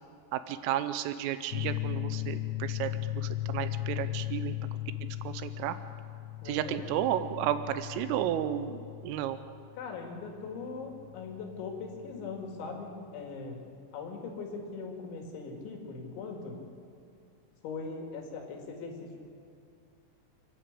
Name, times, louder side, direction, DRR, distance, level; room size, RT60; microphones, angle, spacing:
voice 1, 0.3-4.6 5.0-5.8 6.5-9.4, right 11 dB, 90° right, 11 dB, 3.4 m, -33 dB
sound 1, 1.5-12.7, left 14 dB, 85° left, 3.4 m, -37 dB
voice 2, 6.4-6.9 9.8-13.6 13.9-16.6 17.6-19.2, left 4 dB, 70° left, 2 dB, 4.4 m, -40 dB
28.5 x 11.0 x 8.2 m, 2.5 s
omnidirectional pair, 5.7 m